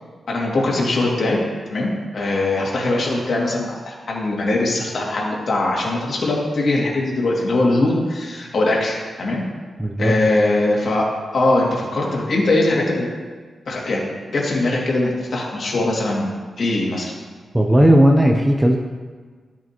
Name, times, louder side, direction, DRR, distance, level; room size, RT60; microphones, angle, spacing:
voice 1, 0.3-1.4 1.7-9.4 10.0-11.1 11.3-13.1 13.7-14.0 14.3-17.1, left 2 dB, 55° left, -3 dB, 2.3 m, -21 dB
voice 2, 9.8-10.4 17.5-18.8, equal, 10° right, 1 dB, 0.6 m, -15 dB
13.0 x 7.3 x 3.0 m, 1.5 s
wide cardioid pair, 130°, 0 cm